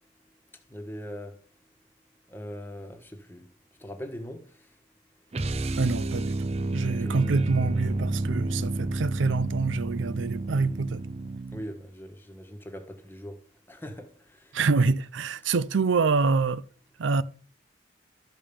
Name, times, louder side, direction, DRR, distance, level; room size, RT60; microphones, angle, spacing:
voice 1, 0.7-1.4 2.3-3.5 3.8-4.7 6.8-7.2 11.5-13.4 13.7-14.6, equal, 10° left, 1.4 m, -41 dB
sound 1, 5.3-11.8, right 2 dB, 35° right, 0.5 m, -30 dB
voice 2, 5.8-11.0 14.5-16.6 17.0-17.2, right 4 dB, 80° right, 0.5 m, -26 dB
13.0 x 5.3 x 6.9 m
head